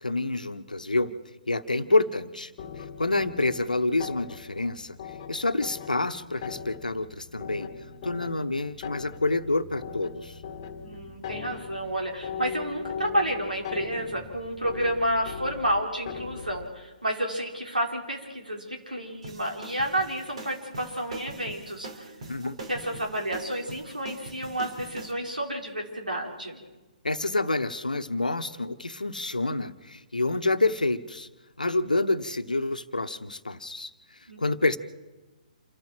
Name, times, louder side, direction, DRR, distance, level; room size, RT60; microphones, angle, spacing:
voice 1, 0.0-1.1 1.5-2.5 3.0-5.0 5.3-10.4 22.3-22.6 27.0-31.3 31.6-33.9 34.4-34.8, left 2 dB, 75° left, 10 dB, 1.2 m, -28 dB
sound 1, 2.6-16.7, left 7 dB, 30° left, 1.9 m, -40 dB
voice 2, 10.8-22.1 22.7-26.6 34.3-34.4, right 1 dB, 80° right, 1 dB, 4.6 m, -30 dB
sound 2, 19.2-25.1, right 2 dB, 50° right, 3.7 m, -42 dB
27.5 x 13.5 x 7.6 m, 1.2 s
figure-of-eight pair, 130°, 4 cm